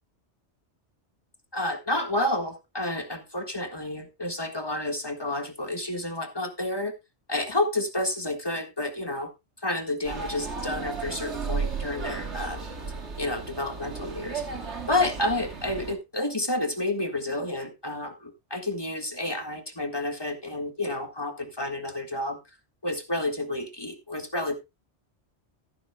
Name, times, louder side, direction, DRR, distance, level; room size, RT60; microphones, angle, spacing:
voice 1, 1.5-6.9 7.3-9.3 9.6-12.6 13.2-14.4 14.9-22.4 22.8-24.5, left 1 dB, 20° left, 1.6 m, -30 dB
sound 1, 10.0-15.9, right 5 dB, 75° right, 2.1 m, -34 dB
14.0 x 11.0 x 2.2 m
omnidirectional pair, 1.2 m